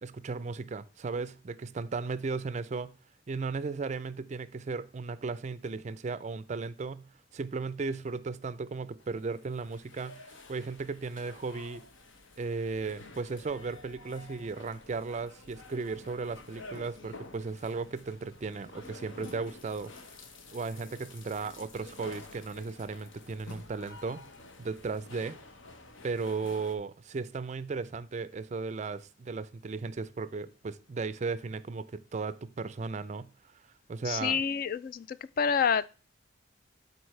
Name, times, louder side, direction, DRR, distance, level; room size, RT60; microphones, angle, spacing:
voice 1, 0.0-3.0 3.3-11.8 12.4-19.9 20.5-24.2 24.6-25.4 26.0-33.3 33.9-34.4, right 4 dB, 35° right, 0.4 m, -36 dB
sound 1, 9.0-26.8, left 3 dB, 75° left, 1.1 m, -50 dB
voice 2, 34.1-35.9, left 6 dB, 45° left, 0.3 m, -28 dB
12.5 x 4.2 x 3.2 m
head